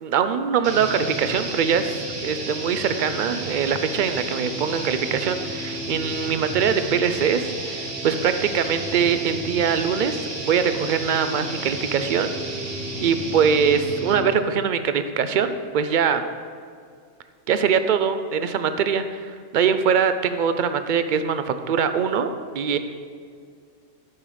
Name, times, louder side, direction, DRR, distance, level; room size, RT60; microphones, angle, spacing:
voice 1, 0.0-12.3 13.0-16.2 17.5-22.3 22.6-22.8, right 7 dB, 60° right, 10 dB, 0.5 m, -23 dB
sound 1, 0.6-14.3, right 2 dB, 75° right, 1.6 m, -32 dB
11.0 x 5.4 x 5.0 m, 2.2 s
omnidirectional pair, 1.2 m